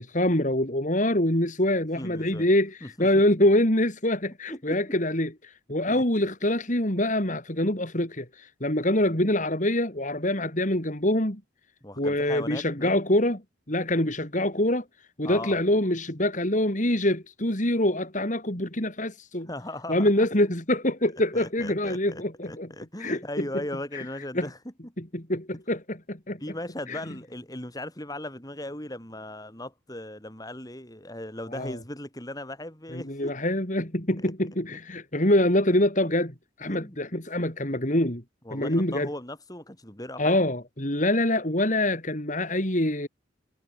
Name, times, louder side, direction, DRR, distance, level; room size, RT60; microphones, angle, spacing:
voice 1, 0.0-11.4 12.0-13.4 13.7-14.8 15.2-19.5 19.9-22.7 23.0-23.2 23.9-24.0 24.3-24.5 25.1-26.4 26.9-27.0 31.5-31.8 32.9-38.2 38.5-39.1 40.2-43.1, left 1 dB, 40° left, 4.2 m, -25 dB
voice 2, 1.9-2.5 2.8-3.1 4.5-4.9 5.9-6.0 11.8-12.9 15.2-15.6 19.5-20.3 21.3-24.9 26.4-33.4 34.2-34.3 36.7-37.0 38.4-40.4, left 1 dB, 20° left, 5.7 m, -38 dB
head